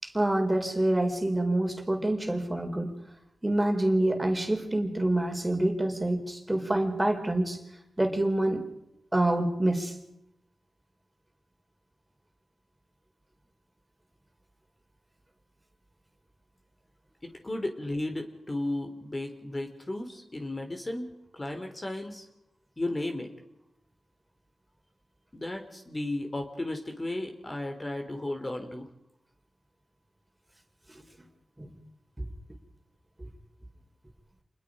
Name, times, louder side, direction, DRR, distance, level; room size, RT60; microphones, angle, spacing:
voice 1, 0.0-2.9 3.4-7.6 8.0-8.6 9.1-9.9 30.9-31.0 31.6-31.7, right 1 dB, 15° right, 4 dB, 4.4 m, -27 dB
voice 2, 17.2-22.3 22.8-23.3 25.3-28.9, left 1 dB, 30° left, 4 dB, 3.6 m, -34 dB
28.0 x 21.0 x 5.2 m, 0.82 s
cardioid pair, 50°, 0 cm